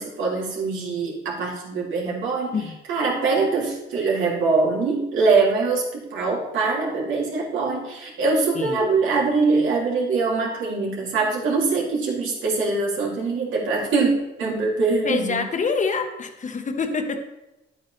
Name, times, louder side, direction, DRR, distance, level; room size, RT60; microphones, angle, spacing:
voice 1, 0.0-2.5 2.9-14.1 14.4-15.4, right 4 dB, 80° right, -3 dB, 2.8 m, -23 dB
voice 2, 15.0-17.2, left 4 dB, 40° left, 6 dB, 1.2 m, -26 dB
10.5 x 8.5 x 3.3 m, 0.96 s
cardioid pair, 90°, 20 cm